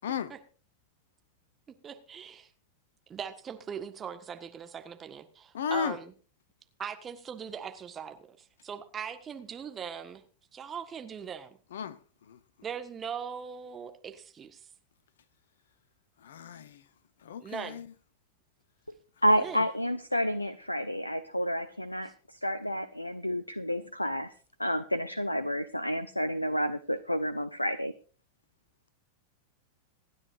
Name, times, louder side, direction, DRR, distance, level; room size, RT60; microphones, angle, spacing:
voice 1, 0.0-0.3 5.5-6.0 11.7-12.0 12.3-12.4 16.2-16.8 17.2-17.9, left 7 dB, 60° left, 0.9 m, -34 dB
voice 2, 1.8-2.5 3.1-6.1 6.8-10.2 10.5-11.6 12.6-14.6 17.4-17.8 19.4-19.7, right 7 dB, 20° right, 1.5 m, -40 dB
voice 3, 19.2-24.3 24.6-27.9, equal, 85° left, 0.6 m, -30 dB
26.5 x 9.8 x 2.6 m
figure-of-eight pair, 90°, 0 cm